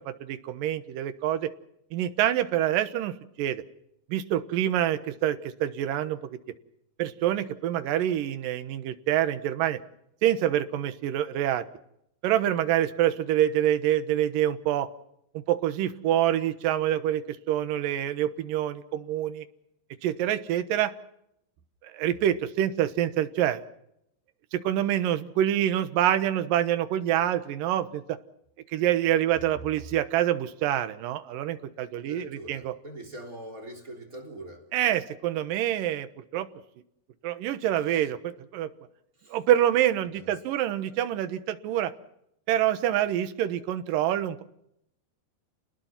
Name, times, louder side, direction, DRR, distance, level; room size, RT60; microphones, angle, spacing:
voice 1, 0.0-1.5 1.9-3.6 4.1-6.4 7.0-9.8 10.2-11.6 12.2-14.9 15.3-19.5 20.0-20.9 21.8-23.6 24.5-28.2 28.7-32.7 34.7-36.1 36.3-36.5 37.2-38.7 39.3-41.9 42.5-44.4, right 11 dB, 70° right, 10 dB, 2.7 m, -26 dB
voice 2, 32.0-34.6 39.2-39.4 40.1-40.3, right 1 dB, 25° right, 1 dB, 3.6 m, -43 dB
29.5 x 20.0 x 5.9 m, 0.77 s
omnidirectional pair, 4.3 m